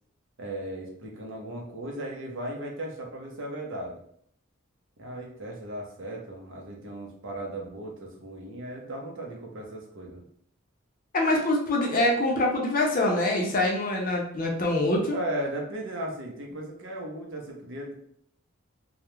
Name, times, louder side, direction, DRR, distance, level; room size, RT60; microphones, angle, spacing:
voice 1, 0.4-4.0 5.0-10.2 15.1-17.9, right 1 dB, 60° right, 0 dB, 0.6 m, -36 dB
voice 2, 11.1-15.2, left 1 dB, 40° left, 0 dB, 0.5 m, -24 dB
2.3 x 2.0 x 3.0 m, 0.66 s
head